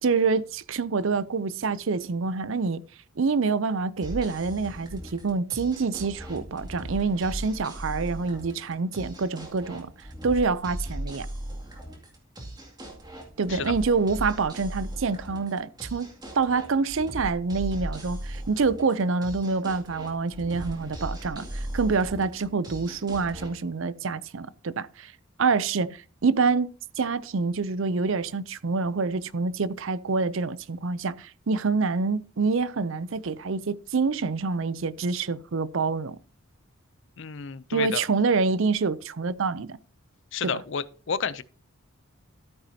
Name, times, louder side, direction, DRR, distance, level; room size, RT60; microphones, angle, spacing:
voice 1, 0.0-2.8 3.2-9.9 10.2-11.3 13.4-16.1 16.4-25.1 25.4-26.7 27.0-36.2 37.7-39.8, right 4 dB, 65° right, 0.5 m, -26 dB
sound 1, 4.0-23.5, right 1 dB, 20° right, 2.3 m, -38 dB
voice 2, 37.2-38.1 40.3-41.4, left 6 dB, 55° left, 0.5 m, -31 dB
13.0 x 9.1 x 2.8 m
head